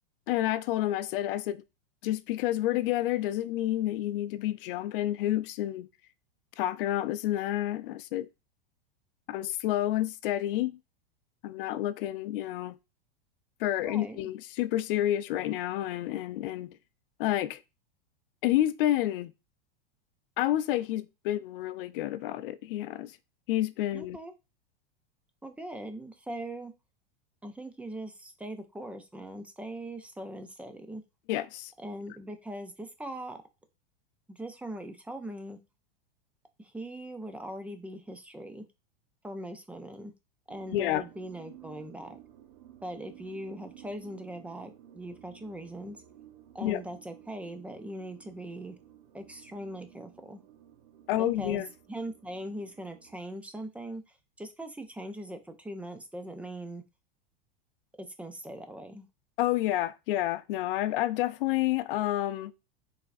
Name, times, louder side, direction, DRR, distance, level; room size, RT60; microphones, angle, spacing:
voice 1, 0.3-1.6 2.0-5.9 6.6-8.3 9.3-10.8 11.4-12.8 13.6-16.8 17.2-17.6 18.4-19.3 20.4-23.1 23.5-24.2 31.3-31.7 40.7-41.0 46.6-46.8 51.1-51.7 59.4-62.5, left 14 dB, 65° left, 0.5 m, -29 dB
voice 2, 13.8-14.2 23.9-24.3 25.4-26.7 27.4-31.0 31.8-33.4 34.3-35.6 36.6-38.6 39.2-40.1 40.5-42.2 42.8-46.0 46.5-48.8 49.1-50.4 51.1-56.8 57.9-59.1, right 1 dB, 5° right, 0.4 m, -41 dB
sound 1, 40.5-53.2, right 11 dB, 70° right, 0.7 m, -54 dB
4.5 x 3.4 x 2.5 m
hypercardioid pair, 120°, 30 cm